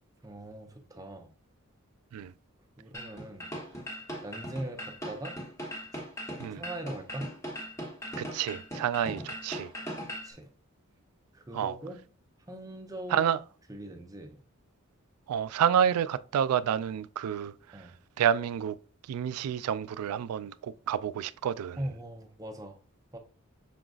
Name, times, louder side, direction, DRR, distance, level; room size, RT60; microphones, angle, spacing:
voice 1, 0.2-1.3 2.8-3.5 4.2-5.4 6.5-7.3 10.2-10.5 11.3-12.0 12.5-13.3 13.7-14.4 17.7-17.9 21.8-22.8 23.1-23.2, right 1 dB, 15° right, 0.6 m, -40 dB
sound 1, 2.9-10.3, equal, 15° left, 1.0 m, -39 dB
voice 2, 8.2-9.7 11.5-11.7 13.1-13.4 15.3-17.8 18.2-18.8 19.1-21.8, right 9 dB, 85° right, 0.3 m, -29 dB
5.7 x 3.8 x 2.4 m
head